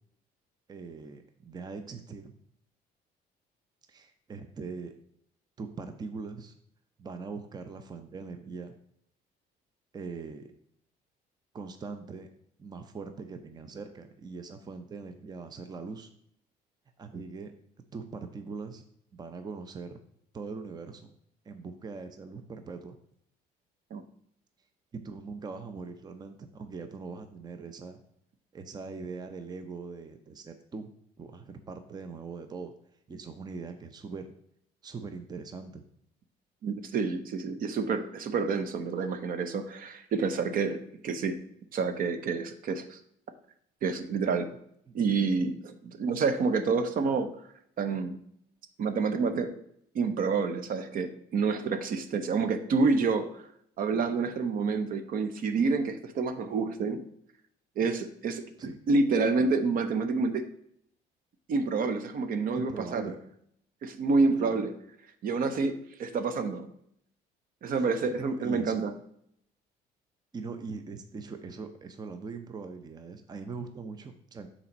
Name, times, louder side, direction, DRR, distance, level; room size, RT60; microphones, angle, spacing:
voice 1, 0.7-2.3 3.9-4.9 5.6-6.5 7.0-8.7 9.9-10.5 11.5-12.3 12.6-16.1 17.0-17.5 17.9-18.8 19.1-20.0 20.3-21.1 21.4-23.0 25.0-28.0 28.5-30.9 31.2-32.7 33.1-34.3 34.8-35.8 44.9-45.0 58.6-58.8 62.6-63.2 64.4-64.6 67.7-68.7 70.3-74.5, right 4 dB, 25° right, 8 dB, 0.6 m, -41 dB
voice 2, 36.6-41.4 41.7-43.0 43.8-44.5 44.9-47.3 47.8-48.2 48.8-49.5 49.9-53.4 53.8-57.0 57.8-58.4 58.9-60.5 61.5-63.1 63.8-64.7 65.2-66.7 67.6-68.9, right 4 dB, 55° right, 9 dB, 0.7 m, -28 dB
5.7 x 4.2 x 5.3 m, 0.70 s
cardioid pair, 110°, 17 cm